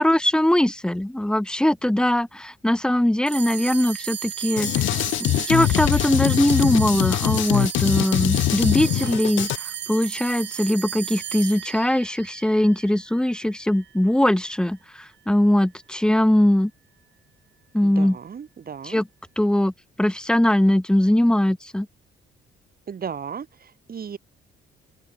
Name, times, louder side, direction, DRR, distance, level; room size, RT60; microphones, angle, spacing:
voice 1, 0.0-4.9 5.2-9.5 9.9-16.7 17.7-18.2 18.8-19.1 19.4-19.7 20.0-21.9, left 1 dB, 5° left, 0.9 m, -21 dB
sound 1, 3.3-13.9, right 11 dB, 65° right, 1.3 m, -34 dB
Drum kit, 4.6-9.6, left 15 dB, 75° left, 0.7 m, -23 dB
voice 2, 17.8-19.0 22.9-24.2, right 7 dB, 50° right, 5.8 m, -35 dB
open air
cardioid pair, 90°, 20 cm